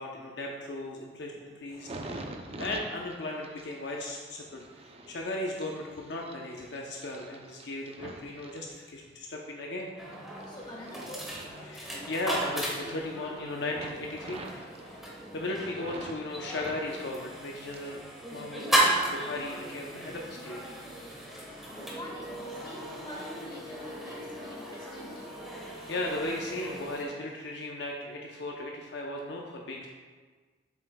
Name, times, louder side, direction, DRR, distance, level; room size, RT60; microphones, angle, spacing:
voice 1, 0.0-2.2 2.6-4.7 5.1-9.9 11.6-15.0 15.3-18.0 18.3-20.6 25.5-29.9, left 1 dB, 70° left, -1 dB, 0.7 m, -36 dB
sound 1, 1.7-9.3 9.8-12.4 12.6-13.4 13.7-16.2 16.5-18.1 18.3-19.1 19.6-19.8, right 2 dB, 35° right, 0.6 m, -46 dB
sound 2, 10.0-27.0, right 1 dB, ahead, 1.2 m, -35 dB
voice 2, 10.5-11.2 21.7-25.2, left 1 dB, 25° left, -4 dB, 1.6 m, -44 dB
7.5 x 7.4 x 2.2 m, 1.4 s
head